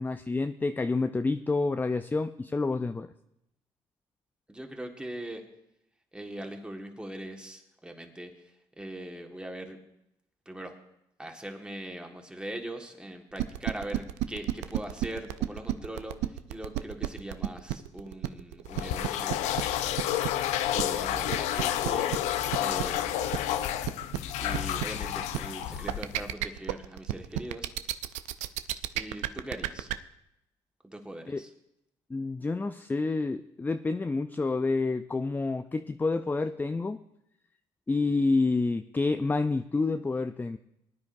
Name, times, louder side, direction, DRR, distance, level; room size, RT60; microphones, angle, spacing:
voice 1, 0.0-3.1 31.3-31.4 32.1-37.0 37.9-40.6, left 3 dB, 15° left, 9 dB, 0.4 m, -28 dB
voice 2, 4.5-5.4 6.1-9.8 10.4-10.7 11.2-19.5 20.7-23.4 24.4-27.7 28.9-29.9 30.8-31.5, right 1 dB, 10° right, 3 dB, 1.7 m, -41 dB
sound 1, 13.4-29.9, right 15 dB, 85° right, 0.4 m, -31 dB
sound 2, 18.7-26.3, left 12 dB, 85° left, 0.5 m, -30 dB
20.0 x 9.7 x 2.6 m, 0.84 s
supercardioid pair, 80°, 12 cm